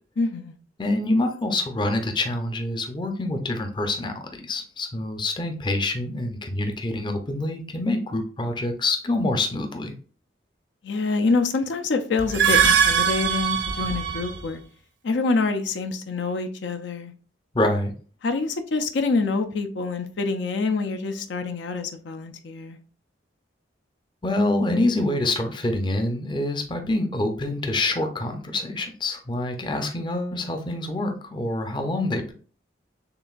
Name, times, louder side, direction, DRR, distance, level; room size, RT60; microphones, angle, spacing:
voice 1, 0.2-0.6 10.8-14.6 15.0-17.1 18.2-22.8, left 3 dB, 75° left, 0.5 m, -26 dB
voice 2, 0.8-9.9 17.5-17.9 24.2-32.3, left 2 dB, 25° left, 0.5 m, -26 dB
sound 1, 12.2-14.4, right 7 dB, 70° right, 0.7 m, -21 dB
6.7 x 2.5 x 2.4 m
head